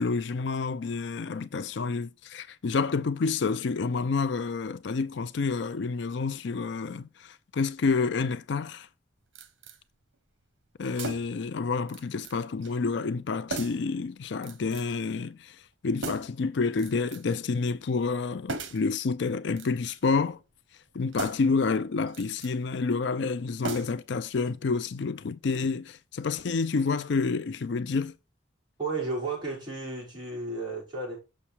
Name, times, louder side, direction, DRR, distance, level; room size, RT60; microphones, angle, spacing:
voice 1, 0.0-8.9 10.8-20.4 20.9-28.1, left 4 dB, 60° left, 0.4 m, -29 dB
sound 1, 9.4-9.8 10.9-11.5 11.9-12.4 12.6-12.8 13.5-13.9 14.4-15.0 16.0-16.4 16.8-17.4 18.5-18.9 19.5-20.2 21.1-21.6 22.1-22.5 23.6-24.2 24.5-24.6, right 3 dB, 80° right, 1.1 m, -38 dB
voice 2, 28.8-31.2, right 3 dB, 25° right, 5.8 m, -33 dB
7.0 x 6.3 x 4.5 m
head